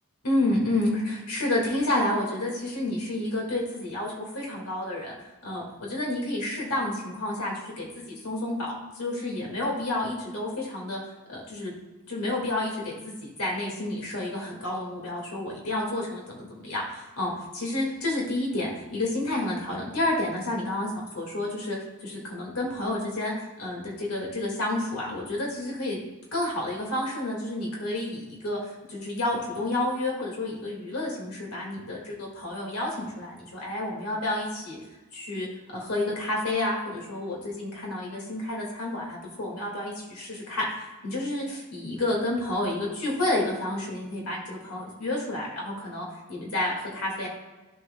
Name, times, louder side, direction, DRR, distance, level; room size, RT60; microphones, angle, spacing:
voice 1, 0.2-5.1 5.4-11.0 11.3-11.7 12.1-20.9 21.1-26.0 26.3-34.8 35.1-35.5 35.7-47.3, left 1 dB, 90° left, -2 dB, 2.0 m, -30 dB
11.5 x 4.5 x 2.3 m, 1.2 s
head